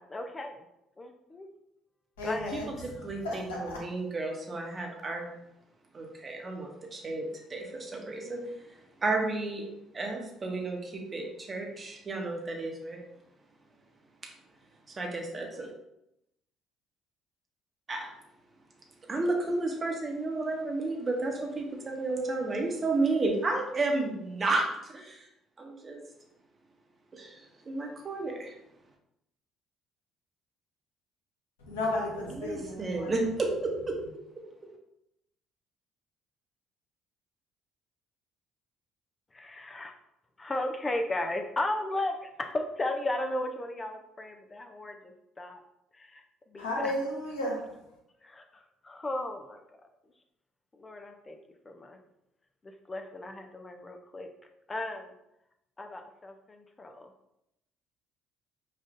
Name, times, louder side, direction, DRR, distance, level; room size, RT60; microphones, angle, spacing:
voice 1, 0.1-0.6 1.0-1.5 2.2-2.6 39.3-39.9 40.4-45.6 45.9-46.9 48.2-49.6 50.7-51.4 51.7-52.0 52.9-54.3 54.7-55.1 55.8-57.1, left 1 dB, 30° left, 5 dB, 0.4 m, -35 dB
voice 2, 2.2-2.7 2.9-3.8 31.6-33.1 46.6-47.7, left 1 dB, 85° left, -2 dB, 0.9 m, -33 dB
voice 3, 3.0-5.3 5.9-13.0 14.2-14.3 15.0-15.7 17.9-18.0 19.1-25.3 25.6-26.0 27.1-28.5 32.3-34.0 34.4-34.5, right 2 dB, 35° right, 1 dB, 0.9 m, -32 dB
5.1 x 2.4 x 2.5 m, 0.84 s
hypercardioid pair, 55°, 0 cm